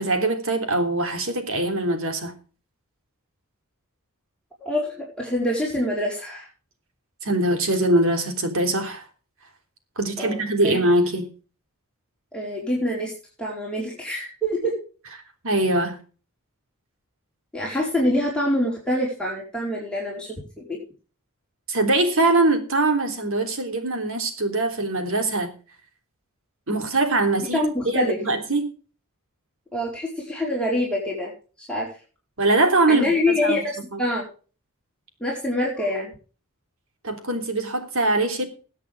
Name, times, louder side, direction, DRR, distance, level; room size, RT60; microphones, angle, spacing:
voice 1, 0.0-2.3 7.2-9.0 10.0-11.2 15.4-16.0 21.7-25.5 26.7-27.6 27.9-28.7 32.4-33.6 33.9-34.0 37.0-38.5, right 2 dB, 65° right, 3.4 m, -22 dB
voice 2, 4.6-6.5 10.2-10.8 12.3-13.1 13.4-14.7 17.5-20.8 27.5-28.2 29.7-31.3 31.6-31.9 32.9-34.3 35.2-36.1, left 1 dB, 5° left, 4.6 m, -25 dB
22.0 x 8.3 x 3.6 m
head